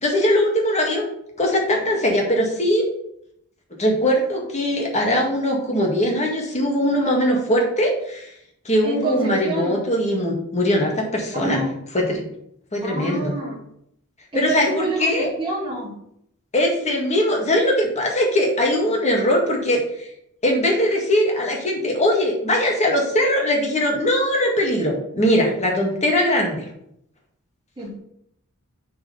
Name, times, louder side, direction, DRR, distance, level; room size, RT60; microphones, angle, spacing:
voice 1, 0.0-1.1 1.4-2.8 3.8-8.3 8.7-11.7 11.9-12.2 12.7-13.4 14.4-15.3 16.5-19.8 20.4-26.6, left 1 dB, 30° left, -1 dB, 1.8 m, -21 dB
voice 2, 8.8-9.8 11.3-11.7 12.8-13.6 14.3-15.9 27.8-28.0, right 2 dB, 25° right, -4 dB, 2.3 m, -27 dB
5.7 x 4.7 x 5.5 m, 0.73 s
head